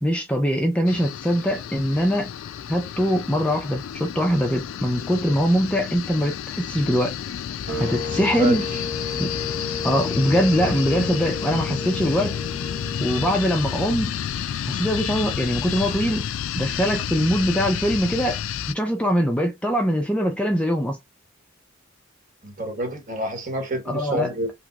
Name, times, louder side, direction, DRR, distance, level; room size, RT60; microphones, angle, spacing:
voice 1, 0.0-2.3 2.7-7.2 7.8-8.7 9.2-9.3 9.8-12.4 13.0-14.1 14.7-16.3 16.6-18.4 18.7-21.0 23.9-24.3, equal, 5° left, 0.4 m, -22 dB
sound 1, 0.9-18.7, left 9 dB, 80° left, 0.3 m, -30 dB
sound 2, 7.7-13.8, left 3 dB, 60° right, 1.1 m, -33 dB
voice 2, 8.2-8.8 22.4-24.5, right 1 dB, 40° right, 1.0 m, -28 dB
3.0 x 3.0 x 2.2 m
head